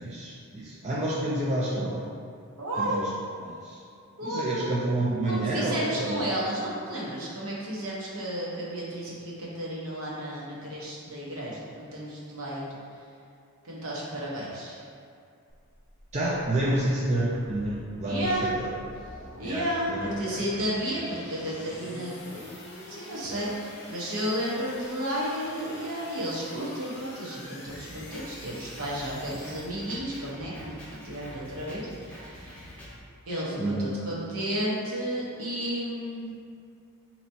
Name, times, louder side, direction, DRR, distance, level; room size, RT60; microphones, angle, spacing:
voice 1, 0.0-2.0 2.8-3.1 3.4-3.8 4.2-6.2 16.1-18.7 19.4-19.6 19.9-20.4 21.2-21.3 33.6-33.9, right 1 dB, 30° right, -6 dB, 0.4 m, -29 dB
voice 2, 2.6-3.1 4.2-4.7 5.3-12.7 13.6-14.8 18.0-18.5 19.4-22.5 22.9-32.7 33.3-36.3, equal, 70° right, -6 dB, 0.9 m, -32 dB
sound 1, 15.5-29.7, left 1 dB, 50° left, 0.6 m, -46 dB
Drum kit, 27.7-33.0, equal, 5° left, 0.7 m, -46 dB
4.4 x 2.9 x 2.7 m, 2.4 s
head